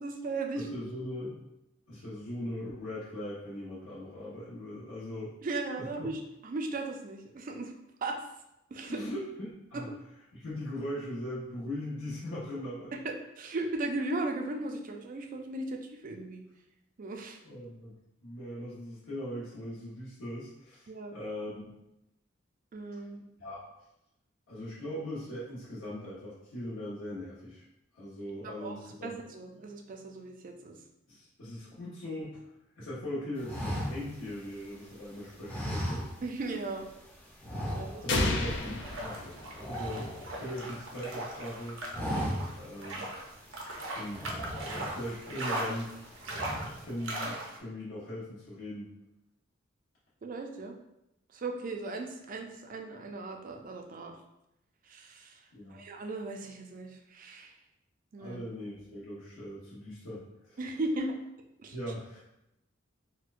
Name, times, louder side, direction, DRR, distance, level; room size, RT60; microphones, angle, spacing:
voice 1, 0.0-0.7 5.4-7.7 8.0-8.2 8.7-9.0 13.0-16.4 17.0-17.4 20.9-21.1 22.7-23.2 28.4-30.8 36.2-36.9 37.7-38.2 50.2-50.7 51.3-54.1 54.9-55.4 55.7-57.5 58.1-58.4 60.6-61.1 61.6-61.7, right 2 dB, 45° right, 3 dB, 0.4 m, -37 dB
voice 2, 0.5-1.4 1.9-5.3 5.8-6.1 8.9-9.9 10.3-12.9 17.4-21.7 23.4-23.6 24.5-27.6 27.9-29.2 31.1-32.4 32.8-36.1 37.6-41.8 42.5-43.1 43.9-46.0 46.8-48.9 55.5-55.8 58.2-60.6 61.7-62.2, left 1 dB, 80° left, -10 dB, 0.9 m, -40 dB
sound 1, 33.4-34.9 35.4-36.6 36.8-37.0 37.4-38.3 38.6-38.8 39.1-40.8 41.2-41.5 41.8-42.7 43.2-43.3 44.0-45.2 45.6-46.0 46.2-46.8, equal, 10° left, 0.6 m, -36 dB
sound 2, 38.1-40.0, left 2 dB, 65° left, 0.4 m, -31 dB
sound 3, 38.4-47.6, right 1 dB, 85° right, 0.7 m, -39 dB
4.3 x 2.1 x 2.5 m, 0.87 s
head